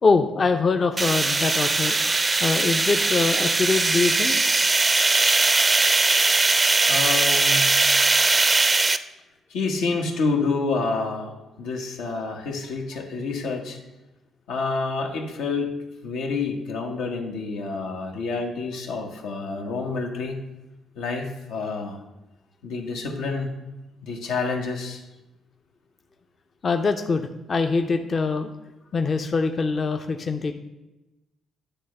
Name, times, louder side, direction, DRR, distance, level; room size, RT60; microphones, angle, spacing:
voice 1, 0.0-4.3 6.8-7.0 26.6-28.5 28.9-30.5, left 4 dB, 40° left, 5 dB, 0.5 m, -23 dB
sound 1, 1.0-9.0, right 3 dB, 25° right, 0.4 m, -20 dB
voice 2, 6.2-6.5 6.9-7.6 9.5-13.8 14.5-15.7 16.0-20.4 20.9-22.0 22.6-23.5 24.0-25.0, left 4 dB, 90° left, 1 dB, 1.2 m, -28 dB
10.0 x 3.4 x 6.5 m, 1.0 s
cardioid pair, 90°, 0 cm